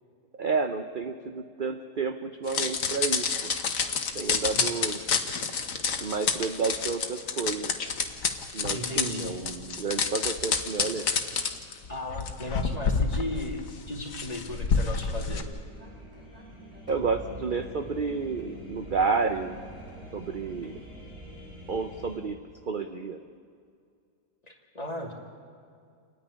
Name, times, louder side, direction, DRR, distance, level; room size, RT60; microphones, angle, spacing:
voice 1, 0.4-3.5 4.1-5.0 6.0-7.7 8.5-11.1 16.9-19.6 20.1-20.7 21.7-22.4 22.7-23.2, right 4 dB, 40° right, 7 dB, 0.8 m, -30 dB
sound 1, 2.5-15.4, left 5 dB, 60° left, 1.6 m, -28 dB
voice 2, 8.7-9.3 11.9-15.5 24.5-25.1, left 1 dB, 25° left, 0 dB, 2.7 m, -36 dB
sound 2, 13.6-22.2, left 1 dB, 60° right, 6.7 m, -47 dB
sound 3, 14.8-21.0, equal, 5° right, 4.5 m, -48 dB
29.0 x 9.8 x 9.9 m, 2.3 s
omnidirectional pair, 1.6 m